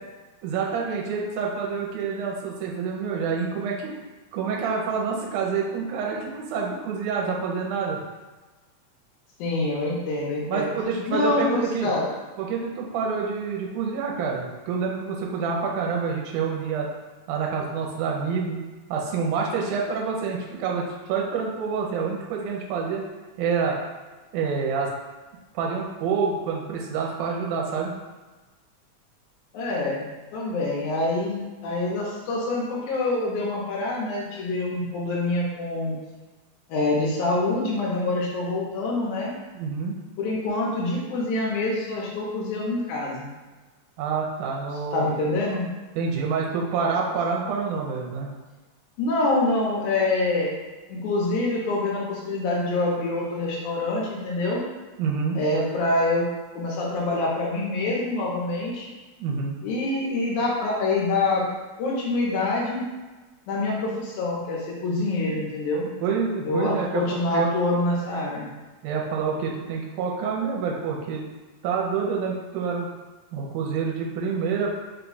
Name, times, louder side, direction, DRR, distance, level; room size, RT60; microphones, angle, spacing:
voice 1, 0.4-3.9 4.3-8.0 10.5-11.9 12.4-16.9 17.3-18.6 18.9-23.0 23.4-23.8 24.3-24.9 25.5-27.9 39.5-40.0 44.0-45.1 46.0-48.3 55.0-55.4 59.2-59.6 66.0-67.5 68.8-71.2 71.6-72.9 73.3-74.7, right 5 dB, 85° right, -2 dB, 2.2 m, -27 dB
voice 2, 9.4-10.7 11.1-12.1 29.5-36.0 36.7-39.3 40.2-43.3 44.9-45.6 49.0-50.5 50.9-54.6 55.4-56.3 56.6-58.9 59.6-61.4 61.8-62.8 63.5-65.9 66.4-68.5, left 2 dB, 80° left, -4 dB, 2.4 m, -26 dB
5.3 x 2.3 x 3.9 m, 1.3 s
omnidirectional pair, 3.6 m